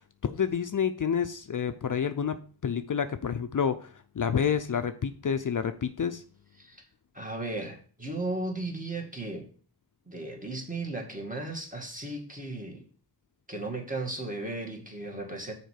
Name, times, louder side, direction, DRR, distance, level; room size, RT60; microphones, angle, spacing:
voice 1, 0.2-6.2, left 7 dB, 50° left, 9 dB, 0.6 m, -29 dB
voice 2, 7.1-9.5 10.1-12.8 13.5-15.5, right 2 dB, 20° right, 0 dB, 2.1 m, -35 dB
6.5 x 4.4 x 6.5 m, 0.42 s
wide cardioid pair, 60°, 40 cm